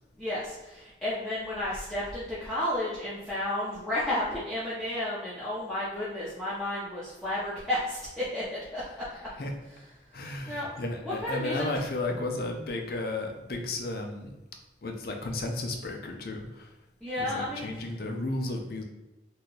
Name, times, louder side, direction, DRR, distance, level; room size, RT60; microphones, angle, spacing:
voice 1, 0.2-9.3 10.1-10.7 11.0-11.6 17.0-17.8, left 1 dB, 5° left, -12 dB, 0.7 m, -32 dB
voice 2, 8.9-9.5 10.1-14.3 14.8-16.7 17.2-18.8, left 2 dB, 55° left, 2 dB, 0.5 m, -34 dB
2.7 x 2.3 x 3.9 m, 1.0 s
head